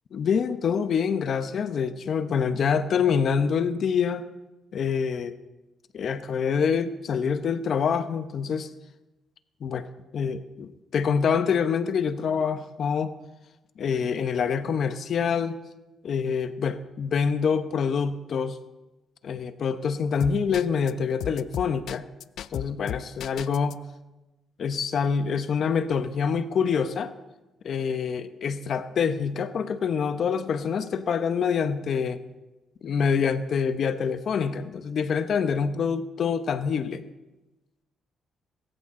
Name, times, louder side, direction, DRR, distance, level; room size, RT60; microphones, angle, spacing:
voice 1, 0.1-4.3 4.7-5.3 5.9-8.7 9.6-9.9 10.1-13.1 13.8-15.6 16.0-18.6 19.2-22.0 22.5-23.8 24.6-27.1 27.6-32.2 32.8-37.0, left 6 dB, 60° left, 11 dB, 0.9 m, -26 dB
sound 1, 20.2-20.9 21.2-23.7, left 11 dB, 75° left, 0.4 m, -34 dB
21.0 x 14.5 x 3.8 m, 1.1 s
cardioid pair, 90°, 0 cm